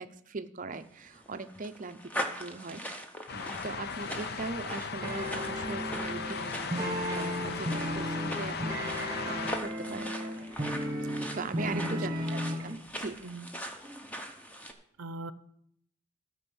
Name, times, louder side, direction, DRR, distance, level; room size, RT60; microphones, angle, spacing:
voice 1, 0.0-3.0 3.3-10.1 11.3-13.2, right 3 dB, 35° right, 11 dB, 0.6 m, -40 dB
sound 1, 0.9-14.7, equal, 5° left, 0.8 m, -41 dB
sound 2, 3.3-9.6, left 5 dB, 45° left, 0.5 m, -37 dB
sound 3, 5.0-12.7, equal, 20° right, 1.4 m, -35 dB
voice 2, 9.9-10.2 11.6-12.2 13.2-13.5 15.0-15.3, right 3 dB, 70° right, 15 dB, 0.6 m, -41 dB
13.0 x 5.3 x 7.0 m, 0.69 s
head